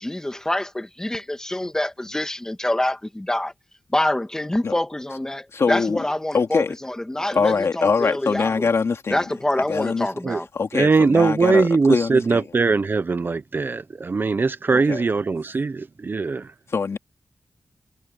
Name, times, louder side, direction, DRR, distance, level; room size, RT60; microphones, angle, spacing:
voice 1, 0.0-3.5 3.9-8.7 9.1-10.5, left 1 dB, 10° left, 1.9 m, -26 dB
voice 2, 5.5-6.0 6.3-6.7 7.3-9.2 9.7-10.1 10.5-12.5 14.7-15.1 16.7-17.0, left 5 dB, 60° left, 3.1 m, -23 dB
voice 3, 10.7-16.4, right 4 dB, 40° right, 0.8 m, -20 dB
wide cardioid pair, 150°, 5 cm